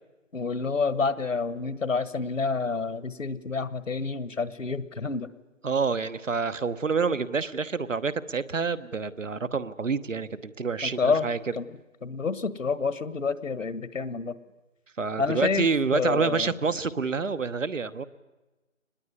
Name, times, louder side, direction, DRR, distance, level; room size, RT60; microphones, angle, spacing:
voice 1, 0.3-5.3 10.8-11.3 11.5-11.7 12.0-14.4 15.2-15.7 15.9-16.5, left 4 dB, 70° left, 16 dB, 1.6 m, -28 dB
voice 2, 5.6-11.4 15.0-18.1, right 5 dB, 70° right, 13 dB, 1.2 m, -28 dB
23.5 x 20.5 x 9.6 m, 1.1 s
figure-of-eight pair, 165°, 39 cm